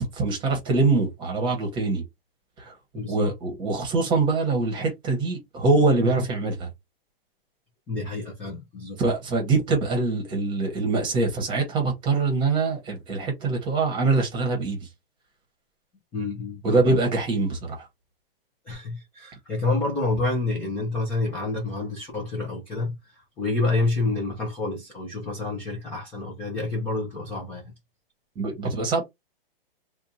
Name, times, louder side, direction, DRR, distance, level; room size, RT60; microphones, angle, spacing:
voice 1, 0.0-2.0 2.6-2.7 3.1-6.7 9.0-14.9 16.6-17.8 28.4-29.0, right 3 dB, 15° right, 1.0 m, -24 dB
voice 2, 2.9-3.3 7.9-9.0 16.1-16.8 18.7-27.7, left 2 dB, 5° left, 0.4 m, -28 dB
2.7 x 2.3 x 4.1 m
hypercardioid pair, 155°, 29 cm